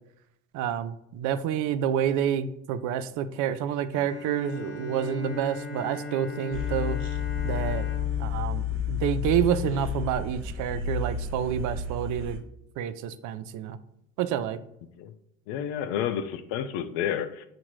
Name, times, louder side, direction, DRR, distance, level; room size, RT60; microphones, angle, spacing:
voice 1, 0.5-7.0 7.4-7.9 8.2-12.4 12.8-13.8 14.2-14.6, right 9 dB, 60° right, 12 dB, 0.5 m, -28 dB
Bowed string instrument, 3.9-9.8, left 2 dB, 45° left, 0.8 m, -39 dB
sound 1, 6.5-12.4, left 7 dB, 35° right, 1.0 m, -31 dB
voice 2, 15.5-17.5, left 9 dB, 75° left, 10 dB, 0.5 m, -30 dB
5.8 x 2.5 x 3.0 m, 0.81 s
supercardioid pair, 80°, 35 cm